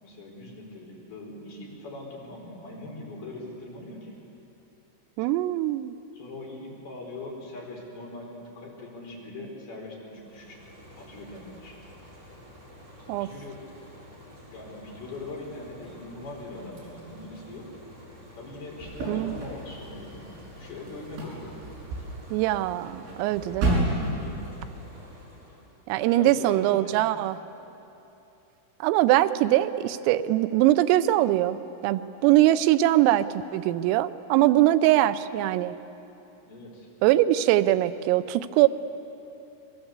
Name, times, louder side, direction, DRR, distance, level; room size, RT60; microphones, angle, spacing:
voice 1, 0.0-4.2 6.1-10.6 11.0-11.8 13.1-13.8 14.5-17.7 18.3-21.5 22.0-22.1 24.2-24.5 26.0-27.1 36.4-36.9, left 2 dB, 50° left, -2 dB, 6.4 m, -41 dB
voice 2, 5.2-5.9 13.1-13.3 19.1-19.4 22.3-23.8 25.9-27.4 28.8-31.6 31.8-35.7 37.0-38.7, right 14 dB, 90° right, 13 dB, 3.4 m, -22 dB
sound 1, 10.0-25.8, left 1 dB, 30° right, 7.0 m, -49 dB
sound 2, 18.8-24.7, right 1 dB, 75° right, 9.3 m, -32 dB
27.5 x 22.0 x 8.2 m, 3.0 s
omnidirectional pair, 5.8 m